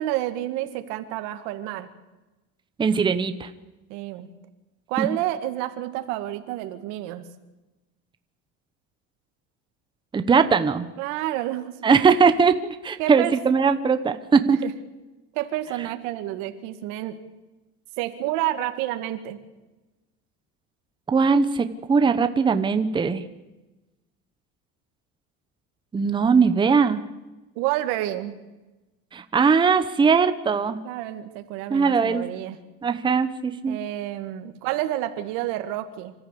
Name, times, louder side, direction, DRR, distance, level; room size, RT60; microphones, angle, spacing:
voice 1, 0.0-1.9 3.9-4.3 4.9-7.3 11.0-12.0 13.0-13.3 14.6-14.7 15.3-17.2 18.0-19.4 27.6-28.4 30.8-32.6 33.7-36.1, right 14 dB, 85° right, 8 dB, 2.1 m, -29 dB
voice 2, 2.8-3.5 5.0-5.1 10.1-10.9 11.8-12.5 12.8-14.6 21.1-23.2 25.9-27.0 29.1-30.8 31.7-32.2 32.8-33.8, right 5 dB, 15° right, 9 dB, 0.9 m, -20 dB
26.0 x 14.0 x 8.5 m, 1.1 s
cardioid pair, 155°, 30 cm